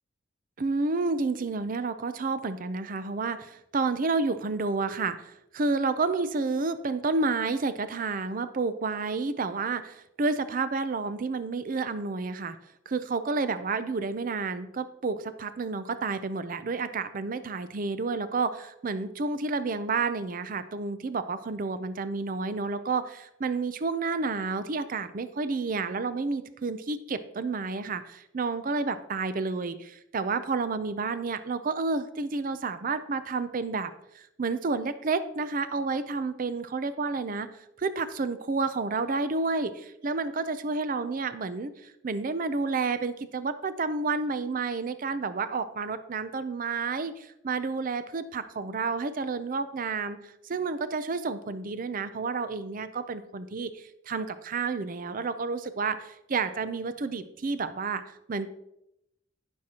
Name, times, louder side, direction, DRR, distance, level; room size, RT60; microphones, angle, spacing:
voice 1, 0.6-12.6 12.9-37.5 37.8-58.5, right 4 dB, 45° right, 12 dB, 0.5 m, -30 dB
15.5 x 6.4 x 2.9 m, 0.82 s
head